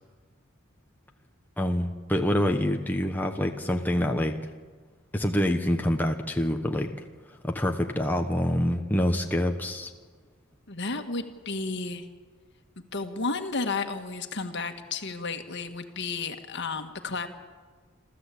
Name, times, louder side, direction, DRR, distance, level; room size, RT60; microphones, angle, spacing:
voice 1, 1.6-4.3 5.1-6.9 7.4-9.9, left 1 dB, 10° left, 3 dB, 1.1 m, -26 dB
voice 2, 10.7-12.1 12.9-17.3, left 3 dB, 55° left, 6 dB, 1.7 m, -32 dB
27.5 x 14.0 x 8.5 m, 1.5 s
head